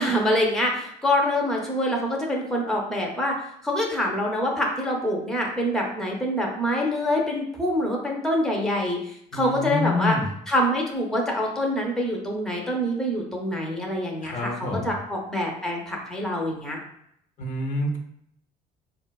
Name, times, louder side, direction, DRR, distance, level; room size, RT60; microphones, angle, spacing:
voice 1, 0.0-3.3 3.6-10.2 10.5-14.5 14.8-16.8, left 1 dB, ahead, -1 dB, 0.6 m, -25 dB
voice 2, 9.3-10.3 14.2-15.0 17.4-18.0, left 2 dB, 50° left, 2 dB, 0.6 m, -27 dB
3.8 x 2.1 x 2.3 m, 0.72 s
cardioid pair, 110°, 17 cm